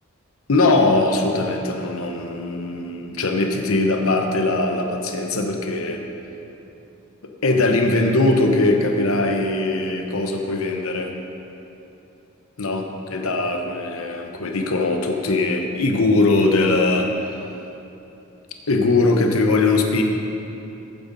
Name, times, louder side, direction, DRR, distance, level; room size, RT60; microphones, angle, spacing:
voice 1, 0.5-6.0 7.2-11.1 12.6-17.4 18.7-20.0, left 2 dB, 80° left, 3 dB, 1.0 m, -20 dB
14.5 x 9.2 x 4.1 m, 2.9 s
head